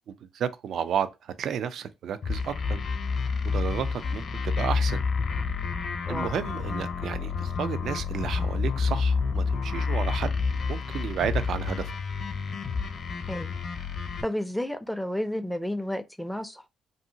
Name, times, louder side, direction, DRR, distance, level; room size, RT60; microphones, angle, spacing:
voice 1, 0.3-2.8 3.5-5.0 6.1-10.4 10.7-11.9, right 8 dB, 70° right, 0.3 m, -32 dB
sound 1, 2.2-14.2, left 5 dB, 50° left, 0.7 m, -29 dB
voice 2, 14.2-16.7, left 1 dB, ahead, 0.4 m, -31 dB
2.7 x 2.7 x 2.7 m
cardioid pair, 90°, 0 cm